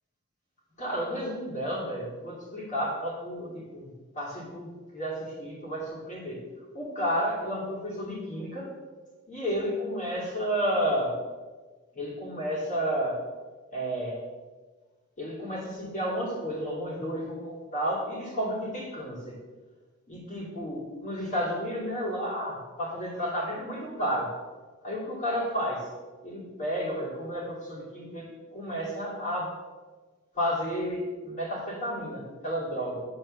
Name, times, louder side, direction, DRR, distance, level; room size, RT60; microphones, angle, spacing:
voice 1, 0.8-6.4 6.7-8.7 9.3-11.1 11.9-13.2 13.7-14.2 15.2-19.3 20.1-24.3 24.8-25.8 26.2-29.5 30.3-33.0, equal, 35° left, -5 dB, 2.8 m, -32 dB
7.9 x 4.4 x 6.6 m, 1.3 s
head